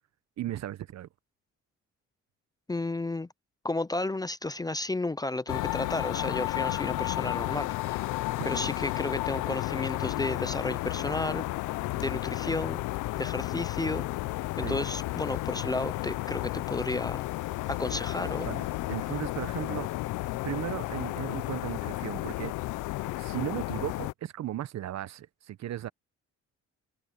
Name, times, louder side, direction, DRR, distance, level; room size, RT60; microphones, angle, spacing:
voice 1, 0.4-1.1 8.4-8.5 14.6-14.8 18.2-19.9 20.4-22.5 23.2-25.9, right 12 dB, 60° right, 0.9 m, -36 dB
voice 2, 2.7-3.3 3.6-8.1 8.4-11.4 12.0-12.8 13.2-14.1 14.6-17.2 17.7-18.6, left 2 dB, 15° left, 0.6 m, -32 dB
sound 1, 5.5-24.1, left 19 dB, 90° left, 0.5 m, -32 dB
sound 2, 17.2-22.0, left 6 dB, 40° left, 2.1 m, -60 dB
cardioid pair, 90°, 30 cm